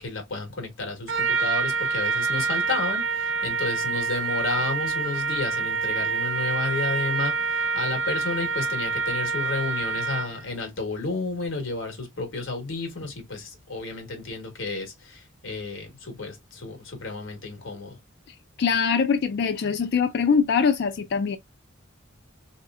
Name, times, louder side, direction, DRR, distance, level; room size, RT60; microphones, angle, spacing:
voice 1, 0.0-18.0, left 3 dB, 90° left, 1.4 m, -32 dB
Trumpet, 1.1-10.4, right 4 dB, 75° right, 0.5 m, -27 dB
voice 2, 18.6-21.4, left 6 dB, 60° left, 0.3 m, -23 dB
3.1 x 2.9 x 2.4 m
head